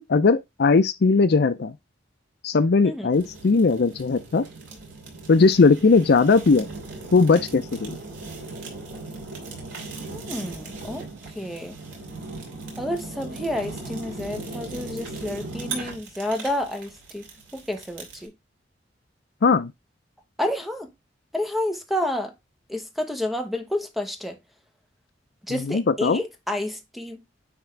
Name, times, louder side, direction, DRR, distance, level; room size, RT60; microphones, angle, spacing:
voice 1, 0.1-1.7 2.4-4.4 5.3-6.7 7.1-8.0 19.4-19.7 25.5-26.2, left 4 dB, 60° left, 0.5 m, -19 dB
Fire, 3.1-18.3, right 3 dB, 80° right, 2.7 m, -38 dB
voice 2, 10.1-11.1 11.3-11.8 12.8-17.3 17.5-18.3 20.4-20.9 21.3-22.3 22.7-24.4 25.5-27.2, left 1 dB, ahead, 1.1 m, -30 dB
9.6 x 3.5 x 3.3 m
head